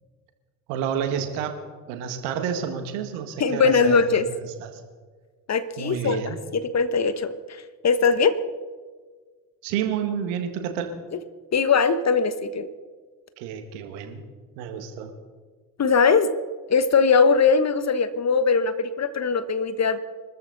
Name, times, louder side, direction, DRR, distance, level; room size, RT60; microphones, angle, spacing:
voice 1, 0.7-1.6 1.9-4.3 4.6-4.8 5.8-6.4 9.6-10.9 13.4-14.2 14.6-15.1, right 8 dB, 70° right, 6 dB, 2.0 m, -29 dB
voice 2, 3.4-4.2 5.5-6.2 6.5-8.4 11.5-12.7 15.8-16.3 16.7-20.0, left 5 dB, 35° left, 12 dB, 1.2 m, -21 dB
24.5 x 13.5 x 4.1 m, 1.5 s
figure-of-eight pair, 50°, 45 cm